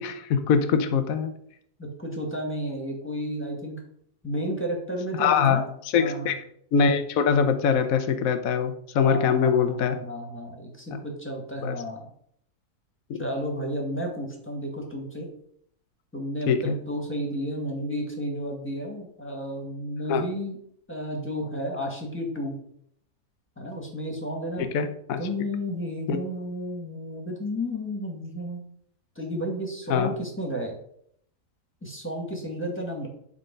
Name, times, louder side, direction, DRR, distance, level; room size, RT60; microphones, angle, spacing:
voice 1, 0.0-1.3 5.2-5.6 5.9-6.4 6.7-10.0 11.6-11.8 13.1-13.3 16.5-16.8 20.1-20.2 24.6-25.2 26.1-26.2 29.9-30.1, left 6 dB, 65° left, 8 dB, 1.2 m, -23 dB
voice 2, 1.8-3.8 4.2-5.6 5.9-6.3 9.0-12.1 13.2-15.3 16.1-20.6 20.9-22.6 23.6-24.7 25.2-28.6 29.2-30.8 31.8-33.1, equal, 10° left, 1 dB, 2.0 m, -32 dB
11.0 x 3.9 x 5.3 m, 0.67 s
omnidirectional pair, 1.7 m